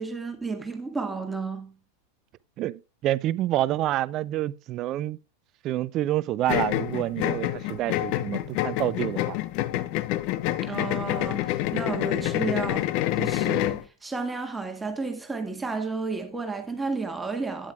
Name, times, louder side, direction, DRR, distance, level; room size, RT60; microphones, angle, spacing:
voice 1, 0.0-1.7 10.6-12.9 13.2-17.7, right 4 dB, 10° right, 1.8 m, -32 dB
voice 2, 2.6-5.2 5.6-9.4, right 14 dB, 35° right, 0.5 m, -28 dB
sound 1, 6.5-13.8, left 14 dB, 45° left, 0.7 m, -27 dB
12.5 x 10.0 x 2.3 m
figure-of-eight pair, 90°, 0 cm